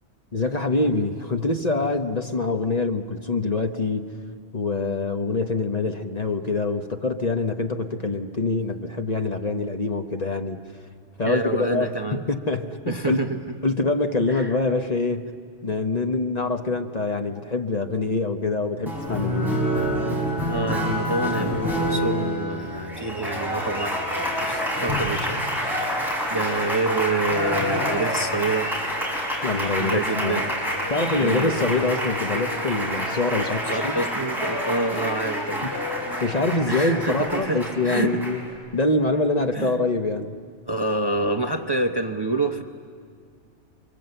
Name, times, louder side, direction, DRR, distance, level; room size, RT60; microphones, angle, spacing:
voice 1, 0.3-4.1 4.5-10.6 11.2-13.3 13.6-15.3 15.6-19.6 29.4-30.3 30.9-34.0 36.2-38.4 38.7-40.4, left 3 dB, 35° left, 5 dB, 1.0 m, -25 dB
voice 2, 11.2-12.3 12.9-13.5 14.3-14.6 20.4-28.7 29.8-30.5 31.2-31.6 33.6-35.7 36.7-38.2 39.5-39.7 40.7-42.6, right 2 dB, 25° right, 5 dB, 0.8 m, -27 dB
Applause, 18.9-38.5, equal, ahead, 5.3 m, -27 dB
sound 1, 30.3-36.5, left 2 dB, 70° left, 4.0 m, -37 dB
29.0 x 24.0 x 7.9 m, 2.1 s
omnidirectional pair, 1.2 m